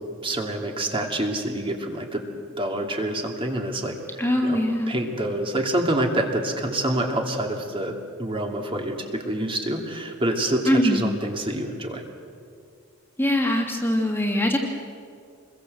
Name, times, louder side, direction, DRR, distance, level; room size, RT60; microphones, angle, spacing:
voice 1, 0.2-2.2 2.6-4.0 4.4-4.6 4.9-12.0, right 1 dB, 25° right, 2 dB, 2.6 m, -27 dB
voice 2, 4.2-5.0 10.7-11.0 13.2-14.6, equal, 10° left, 2 dB, 2.3 m, -22 dB
27.5 x 22.0 x 7.9 m, 2.3 s
head